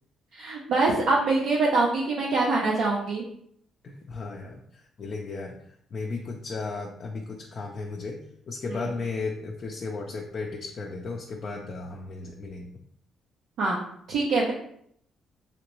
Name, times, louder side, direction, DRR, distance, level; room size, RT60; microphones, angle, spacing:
voice 1, 0.3-3.2 8.7-8.9 13.6-13.8 14.1-14.5, right 3 dB, 80° right, -3 dB, 0.6 m, -24 dB
voice 2, 3.8-4.6 5.0-5.5 5.9-8.2 8.5-12.7, left 3 dB, 55° left, 0 dB, 0.4 m, -34 dB
3.2 x 2.9 x 3.0 m, 0.69 s
cardioid pair, 90°, 0 cm